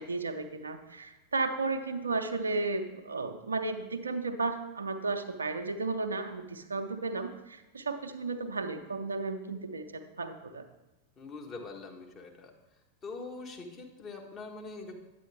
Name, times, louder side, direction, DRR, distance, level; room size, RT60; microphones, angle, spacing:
voice 1, 0.0-10.7, right 3 dB, 75° right, 7 dB, 0.6 m, -34 dB
voice 2, 11.2-12.5 13.0-14.9, left 3 dB, 25° left, 1 dB, 1.3 m, -43 dB
9.1 x 8.3 x 3.4 m, 1.0 s
figure-of-eight pair, 90°, 0 cm